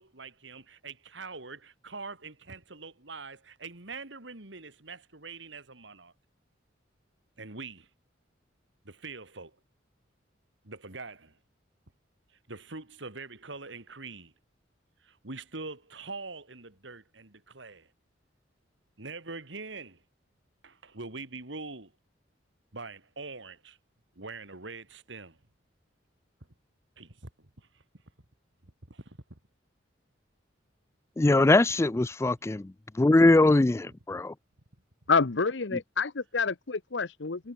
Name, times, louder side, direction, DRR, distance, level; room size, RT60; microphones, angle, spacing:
voice 1, 0.0-6.1 7.4-7.9 8.8-9.6 10.6-11.4 12.5-14.3 15.0-17.9 19.0-20.0 20.6-21.9 22.7-23.8 24.2-25.4 27.0-27.8 28.6-29.4 31.5-31.6 34.1-34.2, right 3 dB, 70° right, 2.8 m, -43 dB
voice 2, 31.2-32.6 32.9-34.3, left 2 dB, 15° left, 0.3 m, -21 dB
voice 3, 35.1-37.5, left 4 dB, 65° left, 0.9 m, -28 dB
head